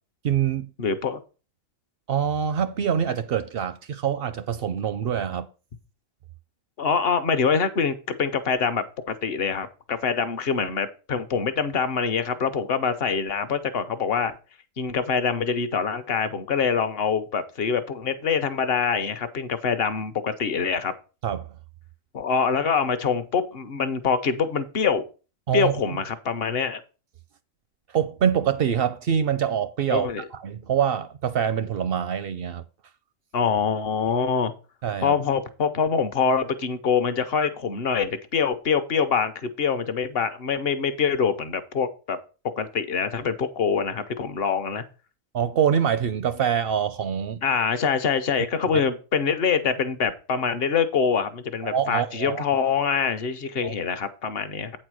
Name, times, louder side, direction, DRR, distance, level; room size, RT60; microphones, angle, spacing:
voice 1, 0.2-0.7 2.1-5.5 21.2-21.5 25.5-25.7 27.9-32.6 34.8-35.1 45.3-47.4 48.7-48.8 51.6-52.4 53.6-53.7, right 8 dB, 60° right, 0.6 m, -25 dB
voice 2, 0.8-1.2 6.8-14.3 14.8-20.9 22.1-25.0 25.5-26.8 29.9-30.2 33.3-34.5 35.0-42.2 42.6-44.9 47.4-54.7, left 6 dB, 50° left, 1.0 m, -25 dB
8.8 x 4.3 x 6.2 m
omnidirectional pair, 1.4 m